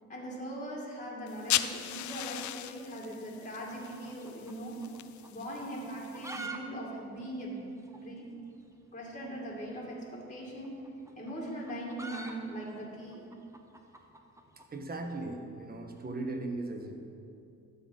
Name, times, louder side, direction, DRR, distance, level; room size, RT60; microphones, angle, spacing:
voice 1, 0.1-4.8 5.3-7.7 7.9-8.3 8.9-10.8 11.2-13.2, right 1 dB, 25° left, -3 dB, 2.4 m, -40 dB
sound 1, 1.3-6.5, left 13 dB, 70° left, 0.5 m, -37 dB
sound 2, 3.7-5.0 5.2-5.3 5.9-6.6 6.9-7.0 7.2-7.3 7.9-8.0 9.2-9.4 10.5-14.7, right 3 dB, 10° right, 1.0 m, -45 dB
voice 2, 14.7-17.0, right 2 dB, 30° right, 3 dB, 1.3 m, -38 dB
12.5 x 4.2 x 7.9 m, 2.6 s
cardioid pair, 90°, 30 cm